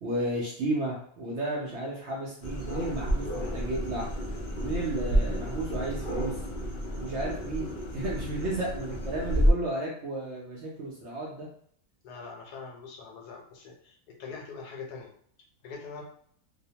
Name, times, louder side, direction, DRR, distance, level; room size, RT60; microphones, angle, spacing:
voice 1, 0.0-6.4 6.9-11.5, right 1 dB, 65° right, -4 dB, 0.7 m, -33 dB
sound 1, 2.4-9.5, equal, 65° left, 0.5 m, -30 dB
voice 2, 12.0-15.1 15.6-16.0, left 5 dB, 85° left, 0 dB, 1.2 m, -43 dB
2.8 x 2.0 x 2.7 m, 0.63 s
omnidirectional pair, 1.7 m